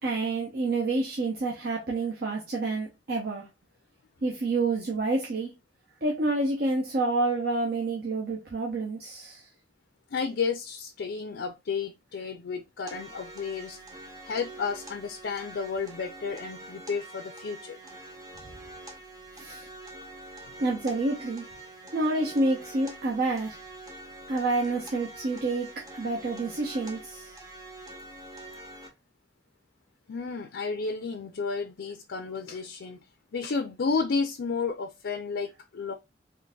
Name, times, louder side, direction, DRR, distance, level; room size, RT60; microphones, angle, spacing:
voice 1, 0.0-3.4 4.2-5.5 6.0-9.4 19.4-19.6 20.6-21.4 21.9-23.6 24.3-25.7 26.0-27.3, right 2 dB, 60° right, 0.7 m, -28 dB
voice 2, 10.1-13.8 14.3-17.8 30.1-33.0 33.3-35.9, left 5 dB, 70° left, 0.4 m, -32 dB
sound 1, 12.9-28.9, right 2 dB, 20° right, 0.7 m, -45 dB
3.8 x 2.5 x 2.3 m
head